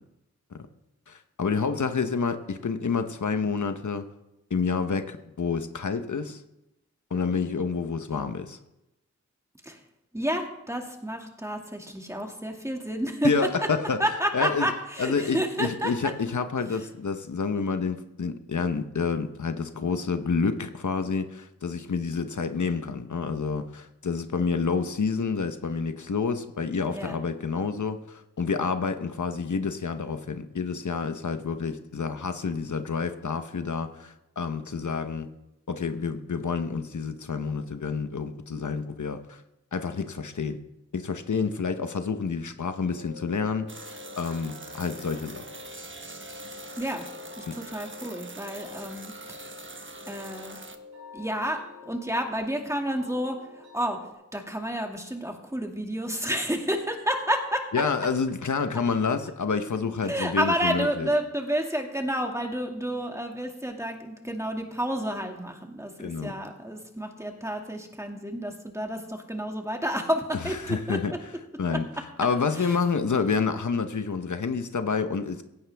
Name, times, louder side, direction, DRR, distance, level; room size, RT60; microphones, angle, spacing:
voice 1, 1.1-4.1 4.5-6.4 7.1-8.6 13.2-14.1 14.3-14.7 15.0-35.3 35.7-39.4 39.7-40.6 40.9-45.4 47.5-47.6 57.7-61.1 66.0-66.4 70.4-71.2 71.6-71.9 72.2-75.4, left 5 dB, 90° left, 1.0 m, -28 dB
voice 2, 10.1-13.3 14.0-15.9 26.9-27.2 46.7-47.0 47.4-49.1 50.1-50.6 51.1-51.6 51.9-54.0 54.3-57.6 60.0-71.2 71.7-71.8 72.6-72.8, equal, 10° right, 2.2 m, -30 dB
sound 1, 42.8-54.1, left 4 dB, 90° right, 7.1 m, -47 dB
sound 2, 43.7-50.8, right 3 dB, 40° right, 1.2 m, -44 dB
16.5 x 15.5 x 3.5 m
wide cardioid pair, 60°, 29 cm